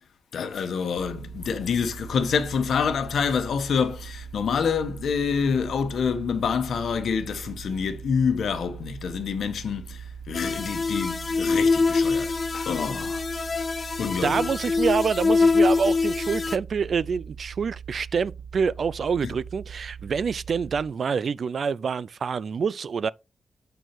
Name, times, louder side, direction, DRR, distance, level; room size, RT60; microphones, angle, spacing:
voice 1, 0.3-13.2 14.0-14.5, left 6 dB, 85° left, 1.2 m, -27 dB
sound 1, 1.0-20.8, right 7 dB, 50° right, 1.2 m, -41 dB
sound 2, 10.3-16.6, left 4 dB, 45° left, 0.4 m, -24 dB
voice 2, 14.2-23.1, right 6 dB, 65° right, 0.3 m, -26 dB
8.0 x 4.6 x 4.4 m
cardioid pair, 80°, 0 cm